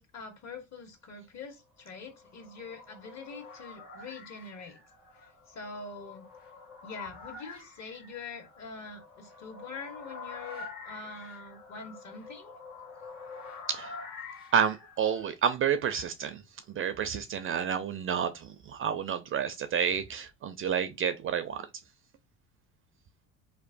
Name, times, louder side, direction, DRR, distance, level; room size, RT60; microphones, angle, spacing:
voice 1, 0.0-4.8 5.5-6.3 6.8-12.5, left 4 dB, 45° left, 1.1 m, -44 dB
sound 1, 1.9-15.3, left 4 dB, 85° left, 1.2 m, -47 dB
voice 2, 14.5-16.4 16.7-21.7, right 8 dB, 35° right, 0.4 m, -30 dB
2.9 x 2.0 x 2.5 m
supercardioid pair, 75°, 37 cm